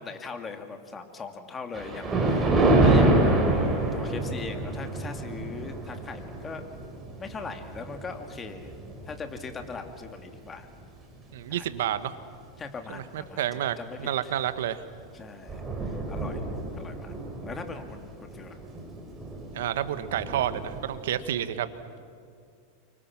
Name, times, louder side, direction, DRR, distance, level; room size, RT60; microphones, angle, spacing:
voice 1, 0.0-6.6 7.2-8.7 9.1-10.7 11.5-11.7 12.6-14.3 15.1-16.4 16.7-17.1 17.4-18.6, left 4 dB, 20° left, 6 dB, 2.3 m, -40 dB
Thunder, 1.7-10.3 10.8-11.0 11.7-11.8 12.2-12.3 14.4-14.7 15.0-15.1 15.2-21.3, right 2 dB, 15° right, 5.3 m, -28 dB
voice 2, 11.3-12.1 12.9-14.8 19.5-21.7, right 11 dB, 80° right, 12 dB, 1.3 m, -30 dB
29.5 x 24.5 x 6.0 m, 2.3 s
supercardioid pair, 130°, 0 cm